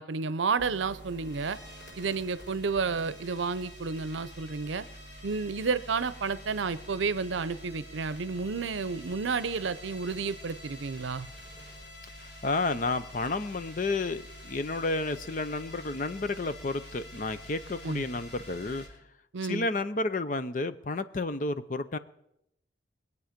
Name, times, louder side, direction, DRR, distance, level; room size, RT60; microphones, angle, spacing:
voice 1, 0.0-1.6 2.0-4.8 5.2-11.3 17.8-18.0 19.3-19.7, right 4 dB, 80° right, 16 dB, 0.6 m, -31 dB
sound 1, 0.6-18.9, equal, 60° left, 4.9 m, -47 dB
voice 2, 12.4-18.8 19.5-22.0, left 2 dB, 45° left, 13 dB, 0.6 m, -31 dB
22.5 x 8.3 x 5.1 m, 0.78 s
head